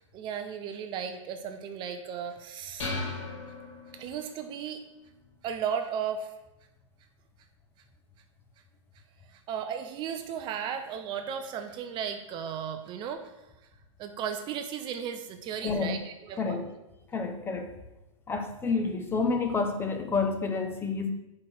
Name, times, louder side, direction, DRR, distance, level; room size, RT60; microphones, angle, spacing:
voice 1, 0.1-2.9 3.9-4.8 5.4-6.3 9.3-13.3 14.0-16.6, right 8 dB, 30° right, 7 dB, 0.5 m, -35 dB
sound 1, 2.8-4.4, left 3 dB, 65° left, 1.8 m, -36 dB
voice 2, 15.6-16.0 16.4-16.7 17.1-17.7 18.3-21.1, left 4 dB, 15° left, 5 dB, 0.6 m, -29 dB
4.8 x 4.5 x 6.0 m, 0.95 s
hypercardioid pair, 125°, 17 cm